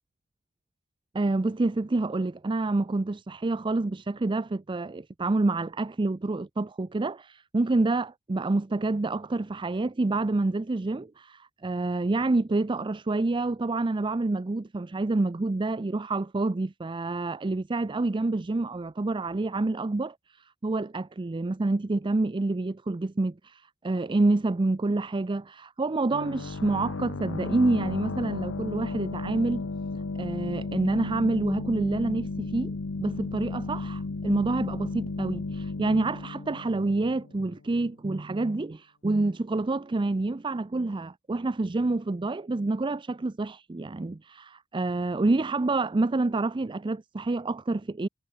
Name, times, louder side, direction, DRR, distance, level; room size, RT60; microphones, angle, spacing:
voice 1, 1.1-29.6 30.2-48.1, right 2 dB, 20° right, 0.4 m, -28 dB
sound 1, 26.1-37.6, left 3 dB, 65° left, 0.8 m, -34 dB
head